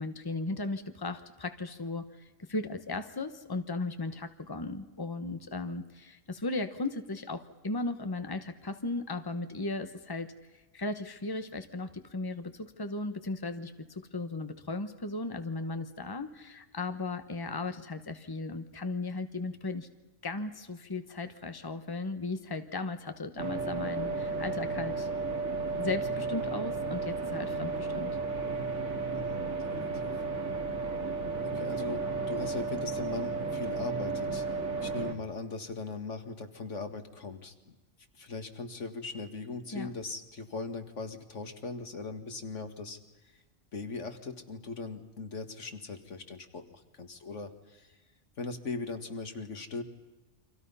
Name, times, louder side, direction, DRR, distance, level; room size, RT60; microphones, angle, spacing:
voice 1, 0.0-10.3 10.7-19.9 20.2-25.1 25.8-28.2 39.7-39.9, left 3 dB, 20° left, 8 dB, 1.2 m, -36 dB
sound 1, 23.4-35.1, right 4 dB, 80° right, 2.4 m, -33 dB
voice 2, 29.1-30.1 31.4-34.4 34.8-37.7 38.2-43.0 43.7-47.9 48.4-49.8, left 3 dB, 90° left, 6 dB, 2.2 m, -39 dB
30.0 x 25.0 x 5.6 m, 1.1 s
omnidirectional pair, 1.2 m